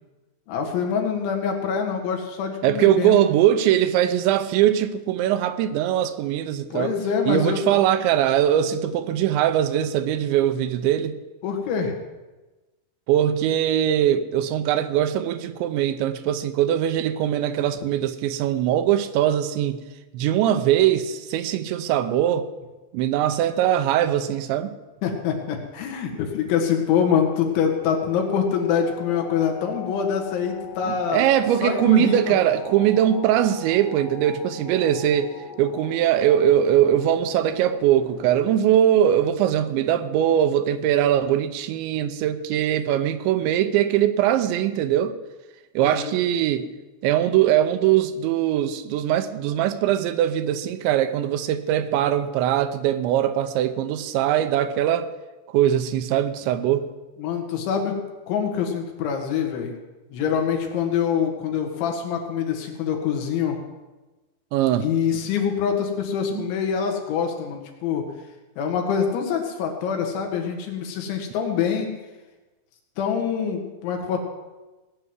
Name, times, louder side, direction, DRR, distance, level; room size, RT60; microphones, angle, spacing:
voice 1, 0.5-3.2 6.7-7.6 11.4-12.0 25.0-31.3 31.6-32.3 45.8-46.1 57.2-59.7 60.1-63.6 64.8-68.1 68.6-71.9 73.0-74.2, left 7 dB, 80° left, 4.2 m, -25 dB
voice 2, 2.6-6.9 7.3-11.2 13.1-19.8 20.1-22.5 22.9-24.8 30.9-35.3 35.6-45.1 45.8-46.7 47.0-55.1 55.5-56.9 64.5-64.9 66.3-66.5, right 11 dB, 80° right, 3.1 m, -21 dB
sound 1, 25.2-38.6, left 7 dB, 65° left, 2.2 m, -41 dB
18.5 x 6.3 x 9.7 m
omnidirectional pair, 5.3 m